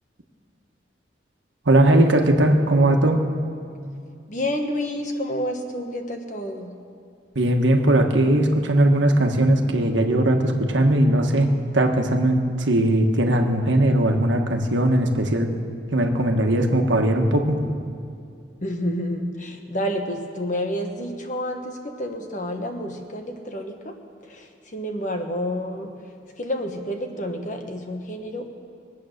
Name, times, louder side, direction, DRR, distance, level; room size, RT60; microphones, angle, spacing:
voice 1, 1.6-3.2 7.3-11.5 11.7-15.5 15.9-17.8, right 1 dB, 80° right, 3 dB, 1.4 m, -19 dB
voice 2, 4.3-6.7 18.6-23.9 24.2-25.9 26.4-28.5, equal, 40° left, 4 dB, 1.3 m, -29 dB
22.5 x 8.6 x 6.6 m, 2.4 s
head